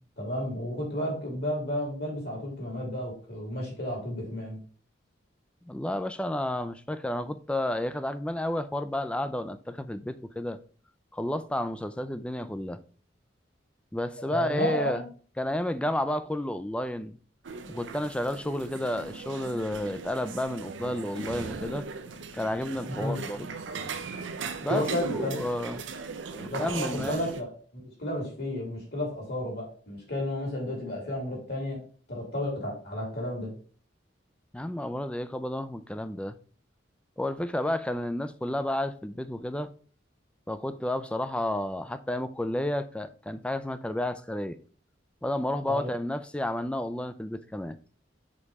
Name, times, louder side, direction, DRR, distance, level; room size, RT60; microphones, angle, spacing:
voice 1, 0.2-4.6 14.3-15.0 23.0-23.2 24.7-25.4 26.5-31.8 32.1-33.5 45.7-45.9, left 1 dB, 60° left, 2.9 m, -32 dB
voice 2, 5.6-10.6 11.1-12.8 13.9-15.0 15.4-17.2 17.7-21.9 22.3-23.5 24.6-25.8 26.3-27.2 34.5-36.4 37.2-39.7 40.5-44.6 45.2-47.8, left 1 dB, 5° left, 0.4 m, -31 dB
sound 1, 17.4-27.4, right 4 dB, 90° right, 0.6 m, -38 dB
5.3 x 4.2 x 4.7 m
head